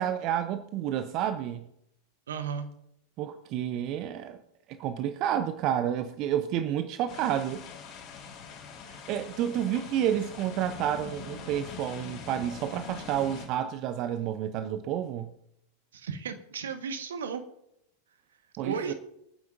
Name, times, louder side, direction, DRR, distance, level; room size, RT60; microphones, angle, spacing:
voice 1, 0.0-1.6 3.2-4.4 4.7-7.6 8.9-15.3 18.6-18.9, right 10 dB, 40° right, 0.8 m, -30 dB
voice 2, 2.3-2.7 15.9-17.4 18.6-18.9, right 6 dB, 65° right, 1.4 m, -34 dB
sound 1, 7.1-13.5, left 6 dB, 35° left, 3.5 m, -43 dB
26.5 x 9.5 x 2.6 m
figure-of-eight pair, 90°, 0 cm